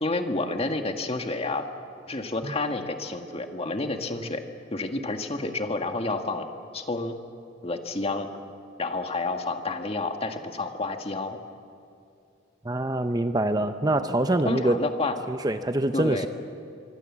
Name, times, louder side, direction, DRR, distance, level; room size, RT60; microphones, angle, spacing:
voice 1, 0.0-1.7 2.1-4.4 4.7-6.5 6.7-7.2 7.6-8.3 8.8-11.4 14.4-15.2 15.9-16.3, left 2 dB, 30° left, 5 dB, 1.7 m, -29 dB
voice 2, 12.6-14.8 15.3-16.3, right 1 dB, 20° right, 8 dB, 0.7 m, -25 dB
25.5 x 23.5 x 7.4 m, 2.5 s
head